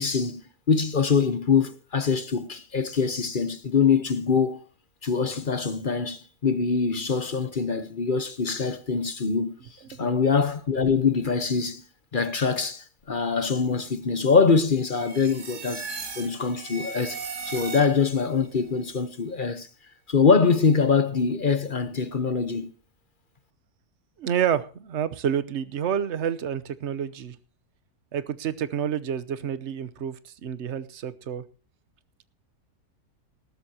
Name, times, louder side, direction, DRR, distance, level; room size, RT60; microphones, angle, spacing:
voice 1, 0.0-4.6 5.0-9.6 10.0-11.8 12.1-15.9 16.2-17.2 17.4-19.7 20.1-22.7, left 5 dB, 40° left, 1.0 m, -24 dB
sound 1, 14.9-18.3, right 4 dB, 85° right, 2.5 m, -37 dB
voice 2, 24.2-27.4 28.1-31.4, right 9 dB, 50° right, 1.1 m, -29 dB
19.5 x 12.5 x 2.9 m
omnidirectional pair, 1.7 m